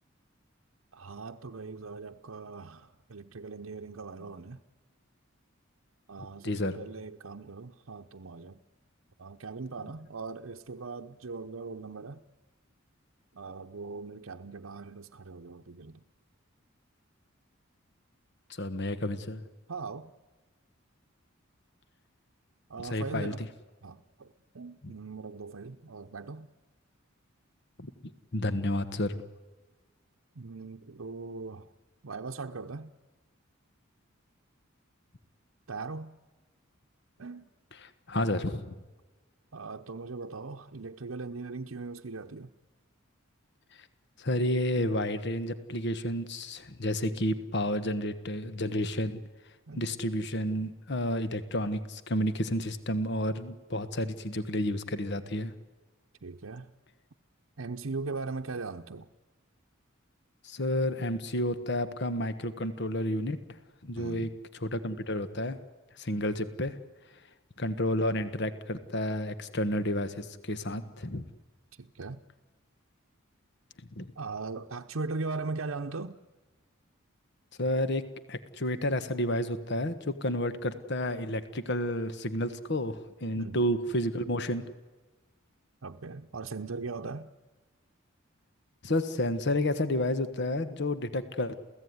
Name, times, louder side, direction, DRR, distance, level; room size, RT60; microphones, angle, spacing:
voice 1, 0.9-4.6 6.1-8.6 9.2-12.2 13.3-16.0 19.7-20.1 22.7-23.4 23.8-24.3 24.5-26.5 30.4-31.7 32.0-32.9 35.7-36.1 37.2-37.5 39.5-42.5 49.7-49.9 56.2-56.7 57.6-59.1 63.9-64.3 71.8-72.2 74.2-76.2 83.4-83.6 85.8-87.3, right 3 dB, 80° right, 0.8 m, -39 dB
voice 2, 6.4-6.8 18.5-19.5 22.8-23.5 24.8-24.9 27.8-27.9 28.3-29.2 37.7-38.7 44.2-49.2 49.7-55.5 60.4-63.4 63.8-65.6 66.0-66.7 67.6-71.2 74.0-74.1 77.6-78.0 78.3-84.6 88.8-91.5, left 1 dB, 55° left, 1.4 m, -31 dB
28.5 x 16.5 x 9.6 m
head